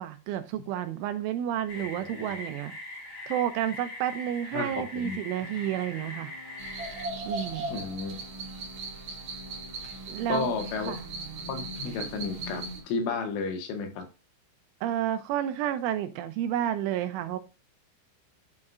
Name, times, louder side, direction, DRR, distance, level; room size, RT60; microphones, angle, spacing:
voice 1, 0.0-2.7 3.3-6.3 7.3-7.7 10.1-10.6 10.9-11.0 14.8-17.4, right 11 dB, 85° right, 2.9 m, -30 dB
sound 1, 1.7-7.1, left 2 dB, 60° left, 1.0 m, -41 dB
voice 2, 4.5-5.2 7.7-8.2 9.1-9.2 10.3-10.9 11.5-14.0, left 4 dB, 75° left, 3.7 m, -32 dB
sound 2, 5.4-13.0, left 3 dB, 45° left, 1.9 m, -51 dB
sound 3, 6.6-12.8, right 2 dB, 60° right, 1.8 m, -38 dB
9.6 x 6.5 x 2.4 m
omnidirectional pair, 5.9 m